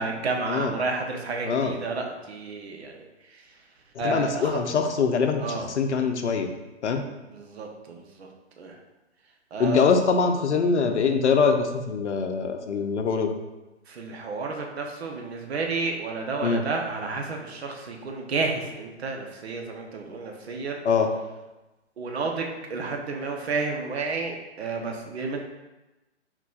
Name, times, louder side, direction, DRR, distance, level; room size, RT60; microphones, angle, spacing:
voice 1, 0.0-3.6 4.0-4.6 5.4-5.7 7.3-8.3 8.6-8.8 9.5-9.9 13.9-20.8 22.0-25.5, right 3 dB, 60° right, 2 dB, 0.9 m, -31 dB
voice 2, 3.9-6.5 6.8-7.0 9.6-13.3 16.4-16.6 20.8-21.1, left 5 dB, 70° left, 5 dB, 0.7 m, -23 dB
4.5 x 3.9 x 2.4 m, 1.0 s
hypercardioid pair, 140°, 36 cm